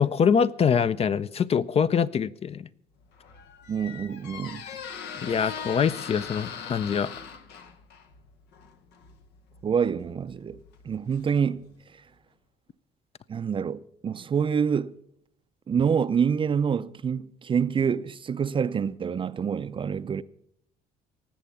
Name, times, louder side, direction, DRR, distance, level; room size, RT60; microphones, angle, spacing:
voice 1, 0.0-2.7 5.2-7.1, left 7 dB, 35° left, 0.5 m, -24 dB
Squeak, 3.0-11.8, left 6 dB, 85° left, 1.2 m, -41 dB
voice 2, 3.7-4.6 9.6-10.6 10.8-11.7 13.3-15.0 15.7-20.2, right 7 dB, 30° right, 0.5 m, -26 dB
18.5 x 7.5 x 7.0 m
cardioid pair, 110°, 17 cm